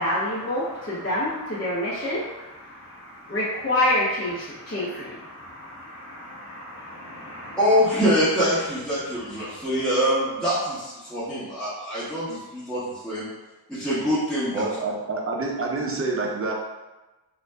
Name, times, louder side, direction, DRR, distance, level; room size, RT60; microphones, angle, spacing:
voice 1, 0.0-2.2 3.3-7.6, left 1 dB, 35° left, -8 dB, 0.6 m, -28 dB
voice 2, 7.6-13.2 13.7-14.6, equal, ahead, -12 dB, 0.8 m, -24 dB
voice 3, 14.6-16.5, right 3 dB, 35° right, -1 dB, 0.5 m, -27 dB
2.6 x 2.1 x 3.3 m, 1.1 s
wide cardioid pair, 110°, 39 cm